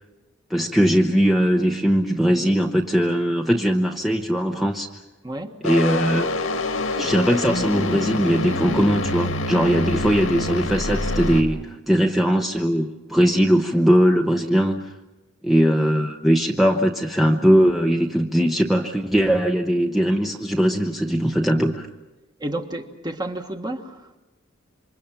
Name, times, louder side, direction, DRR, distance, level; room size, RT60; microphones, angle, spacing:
voice 1, 0.5-4.9 5.6-6.3 7.0-14.9 15.4-21.9, equal, ahead, 0.8 m, -20 dB
voice 2, 5.2-5.6 22.4-24.2, right 1 dB, 20° right, 1.4 m, -31 dB
sound 1, 5.6-11.4, left 2 dB, 75° left, 1.8 m, -26 dB
28.0 x 25.0 x 5.8 m
head